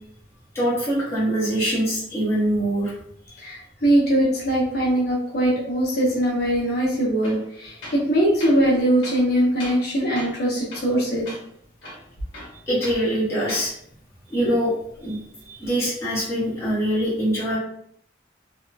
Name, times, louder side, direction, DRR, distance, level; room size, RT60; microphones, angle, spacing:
voice 1, 0.5-2.9 12.7-13.7 14.3-14.7 15.0-17.6, right 1 dB, 15° left, -8 dB, 1.0 m, -23 dB
voice 2, 3.4-11.3, right 1 dB, 55° left, -4 dB, 0.6 m, -21 dB
Tools, 7.2-7.4 7.8-8.1 8.4-8.6 9.0-9.9 10.2-10.4 10.7-11.0 11.3-11.4 11.8-13.0 13.4-13.7, left 1 dB, 75° left, 0.9 m, -39 dB
2.7 x 2.2 x 2.2 m, 0.67 s
head